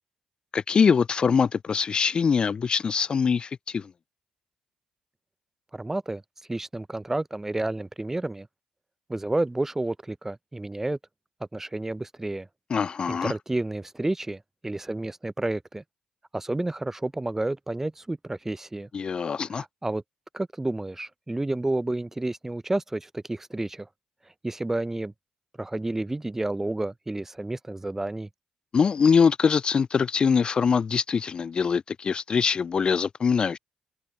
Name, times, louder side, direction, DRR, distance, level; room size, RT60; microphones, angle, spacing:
voice 1, 0.5-3.9 12.7-13.3 18.9-19.6 28.7-33.6, left 6 dB, 45° left, 0.3 m, -23 dB
voice 2, 5.7-6.2 6.5-8.5 9.1-11.0 11.5-12.5 13.1-15.8 16.3-18.9 19.5-20.0 20.3-23.9 24.4-25.1 25.6-28.3, right 2 dB, 15° right, 0.7 m, -30 dB
hypercardioid pair, 40°, 2 cm